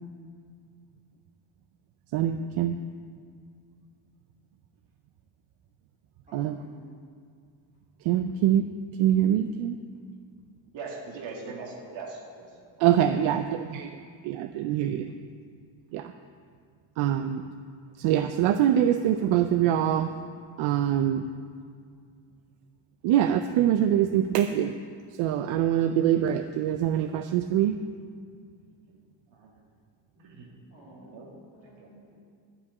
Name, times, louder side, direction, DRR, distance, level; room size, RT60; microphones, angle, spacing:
voice 1, 2.1-2.8 6.3-6.6 8.1-8.7 9.0-9.8 12.8-13.9 14.2-15.1 15.9-16.1 17.0-17.4 18.0-20.1 20.6-21.2 23.0-24.7 25.2-27.8, right 10 dB, 85° right, 8 dB, 0.6 m, -24 dB
voice 2, 6.3-6.9 30.2-30.4 30.7-32.1, equal, 15° right, -11 dB, 3.6 m, -53 dB
voice 3, 10.7-12.5 29.3-29.5 30.2-30.5 30.9-31.3 31.8-31.9, right 4 dB, 70° right, -2 dB, 2.0 m, -40 dB
12.0 x 5.8 x 8.1 m, 2.1 s
cardioid pair, 150°, 47 cm